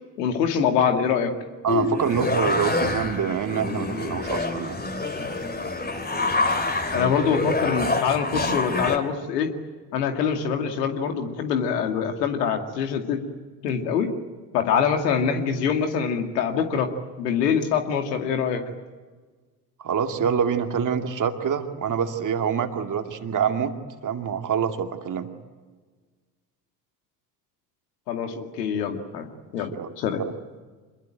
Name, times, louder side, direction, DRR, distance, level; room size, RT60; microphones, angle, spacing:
voice 1, 0.2-1.3 6.9-9.5 9.9-13.2 13.6-14.1 14.5-16.9 17.2-18.6 28.1-29.3 29.5-30.2, left 7 dB, 70° left, 5 dB, 2.4 m, -24 dB
voice 2, 1.6-4.8 19.8-23.7 24.0-25.3 29.7-29.9 30.2-30.3, right 7 dB, 40° right, 5 dB, 2.5 m, -26 dB
sound 1, 1.7-9.0, left 2 dB, 20° left, 3.1 m, -26 dB
26.5 x 21.5 x 9.1 m, 1.4 s
figure-of-eight pair, 60°, 49 cm